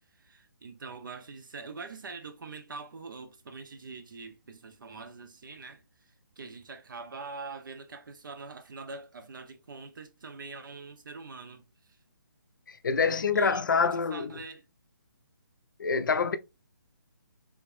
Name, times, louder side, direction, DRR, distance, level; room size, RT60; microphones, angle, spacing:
voice 1, 0.2-5.8 6.4-11.6 13.3-14.7, right 4 dB, 65° right, 0.6 m, -44 dB
voice 2, 12.7-14.4 15.8-16.4, left 5 dB, 65° left, 0.5 m, -26 dB
3.5 x 3.2 x 2.5 m
hypercardioid pair, 160°, 11 cm